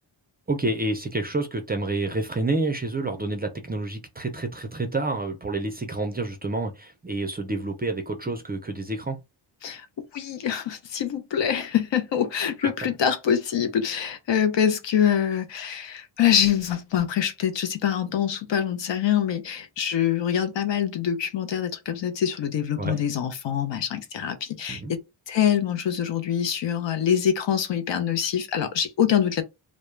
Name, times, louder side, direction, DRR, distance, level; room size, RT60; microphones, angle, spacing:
voice 1, 0.5-9.2 22.8-23.0 24.7-24.9, right 2 dB, 20° right, 0.4 m, -28 dB
voice 2, 10.1-29.4, left 9 dB, 65° left, 0.6 m, -25 dB
2.2 x 2.0 x 3.1 m
cardioid pair, 90°, 47 cm